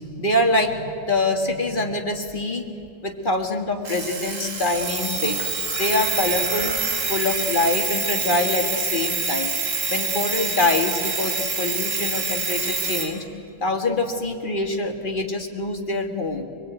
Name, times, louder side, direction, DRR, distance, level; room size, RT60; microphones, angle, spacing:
voice 1, 0.0-2.7 3.0-5.4 5.8-6.8 7.1-9.5 9.9-13.2 13.6-16.4, left 2 dB, 25° left, 4 dB, 2.0 m, -24 dB
Alarm, 3.8-13.1, right 4 dB, 60° right, 3.5 m, -26 dB
25.5 x 21.5 x 9.2 m, 2.5 s
omnidirectional pair, 2.4 m